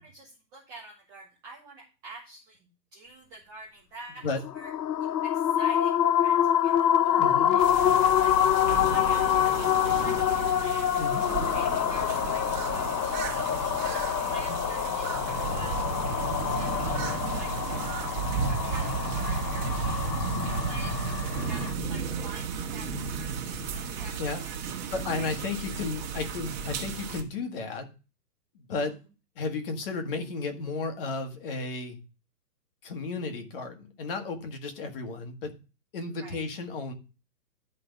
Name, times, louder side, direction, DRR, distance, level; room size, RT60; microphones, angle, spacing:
voice 1, 0.0-4.7 5.0-11.1 11.5-12.9 13.2-20.2 20.5-24.8 25.2-25.8 26.1-26.6 28.7-28.8 36.2-36.4, right 3 dB, 5° right, -5 dB, 0.8 m, -47 dB
sound 1, 4.4-21.7, left 10 dB, 90° left, 0.9 m, -26 dB
voice 2, 7.2-7.6 10.9-11.5 14.2-14.6 24.2-24.5 24.9-27.9 28.5-29.0 29.3-32.0 32.8-35.5 35.9-36.9, left 3 dB, 35° left, 6 dB, 1.7 m, -34 dB
sound 2, 7.6-27.2, right 5 dB, 25° right, 1.7 m, -33 dB
10.5 x 5.1 x 5.1 m, 0.32 s
hypercardioid pair, 165°, 50 cm